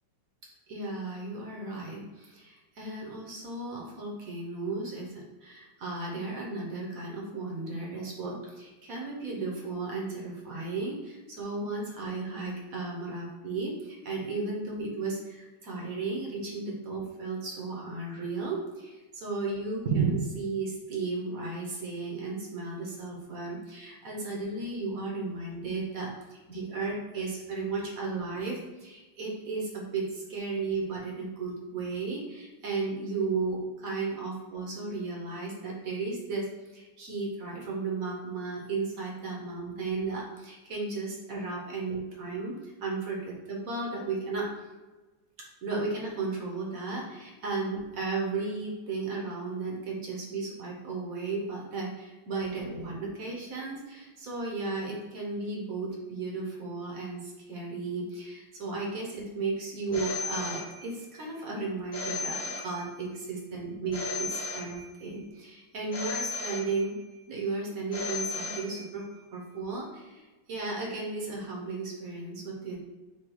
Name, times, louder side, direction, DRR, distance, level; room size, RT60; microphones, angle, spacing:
voice 1, 0.7-44.5 45.4-67.0 67.3-69.1 69.3-72.8, right 3 dB, 55° right, -2 dB, 1.0 m, -34 dB
Telephone, 59.9-61.2 61.9-63.2 63.9-65.2 65.9-67.2 67.9-69.2, left 3 dB, 55° left, 1.1 m, -36 dB
4.3 x 2.3 x 4.6 m, 1.2 s
omnidirectional pair, 2.3 m